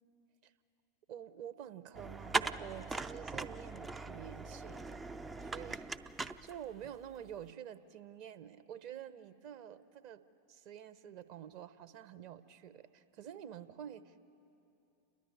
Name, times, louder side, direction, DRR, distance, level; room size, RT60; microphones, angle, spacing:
voice 1, 1.1-5.0 5.4-5.9 6.4-10.2 10.5-14.2, right 10 dB, 40° right, 9 dB, 0.9 m, -48 dB
sound 1, 2.0-7.0, right 3 dB, 10° right, 0.4 m, -40 dB
29.5 x 11.0 x 8.6 m, 2.8 s
figure-of-eight pair, 90°, 0 cm